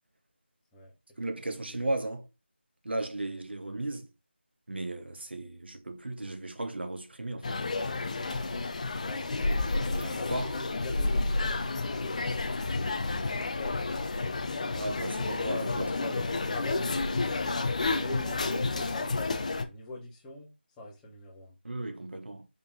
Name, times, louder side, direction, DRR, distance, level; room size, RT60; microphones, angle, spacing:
voice 1, 1.2-2.3 2.8-4.1 4.7-7.6 10.0-10.6 14.7-15.9 21.6-22.5, right 2 dB, 65° right, 1.9 m, -35 dB
sound 1, 7.4-19.6, left 3 dB, 35° left, 0.9 m, -30 dB
voice 2, 9.0-12.2 13.1-14.2 15.2-17.3 17.9-21.5, left 1 dB, 10° left, 1.8 m, -43 dB
7.1 x 5.6 x 3.8 m
figure-of-eight pair, 165°, 6 cm